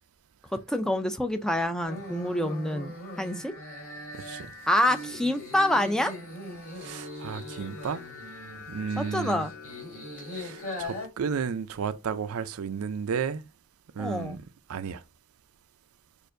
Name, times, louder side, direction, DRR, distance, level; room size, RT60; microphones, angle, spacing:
voice 1, 0.5-2.9 3.2-3.5 4.7-6.1 9.0-9.5 14.0-14.4, left 1 dB, 5° left, 0.3 m, -27 dB
sound 1, 1.8-11.1, left 1 dB, 70° left, 2.8 m, -40 dB
voice 2, 4.2-4.5 6.8-8.0 8.7-9.5 10.3-13.4 14.0-14.4 14.7-15.0, right 6 dB, 75° right, 0.4 m, -33 dB
6.4 x 2.5 x 2.5 m
head